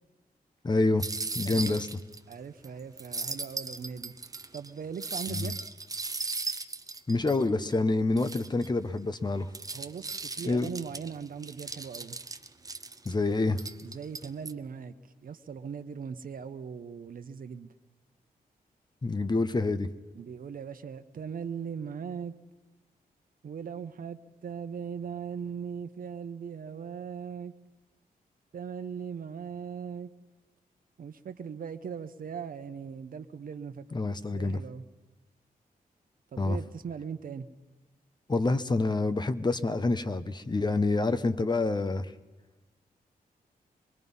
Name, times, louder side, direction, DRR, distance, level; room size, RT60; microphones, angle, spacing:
voice 1, 0.6-1.1 1.3-1.9 5.3-5.5 7.1-9.5 10.4-10.7 13.0-13.6 19.0-19.9 33.9-34.6 36.4-36.6 38.3-42.1, left 3 dB, 30° left, 11 dB, 0.9 m, -27 dB
sound 1, 1.0-2.3 2.6-2.7 3.0-7.8 8.2-8.7 9.2-13.1 13.6-14.5, right 3 dB, 25° right, 0.8 m, -37 dB
voice 2, 1.4-1.8 2.3-4.1 4.5-5.6 9.7-12.2 13.8-14.9 15.2-17.7 20.1-22.3 23.4-27.5 28.5-30.1 31.0-33.8 34.3-34.8 36.3-37.5, right 7 dB, 65° right, 10 dB, 0.9 m, -39 dB
25.0 x 21.5 x 5.5 m, 1.1 s
wide cardioid pair, 95°, 16 cm